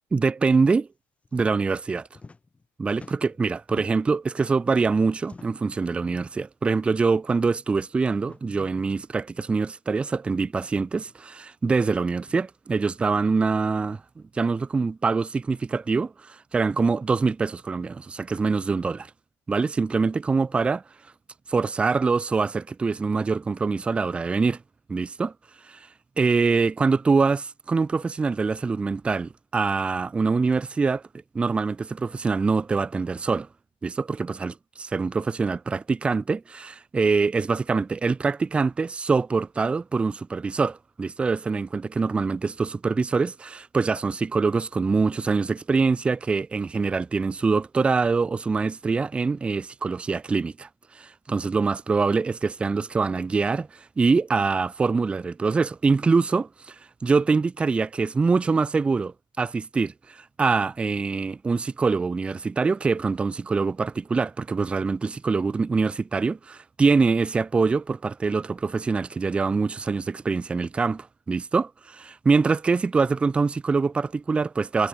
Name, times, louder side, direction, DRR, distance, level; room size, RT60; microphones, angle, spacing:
voice 1, 0.1-0.9 1.3-2.1 2.8-14.0 14.4-19.1 19.5-20.8 21.5-24.6 24.9-25.3 25.7-25.8 26.2-31.0 31.3-33.5 33.8-50.7 51.0-53.7 54.0-56.8 57.0-74.9, right 4 dB, 15° right, 0.3 m, -24 dB
sound 1, 1.2-1.5 1.8-2.7 2.9-4.2 5.2-5.7 6.7-6.8 7.2-7.3 8.2-8.4 9.6-9.7 10.9-11.2 12.2-12.5, left 3 dB, 15° left, 6.5 m, -47 dB
cardioid pair, 165°, 9 cm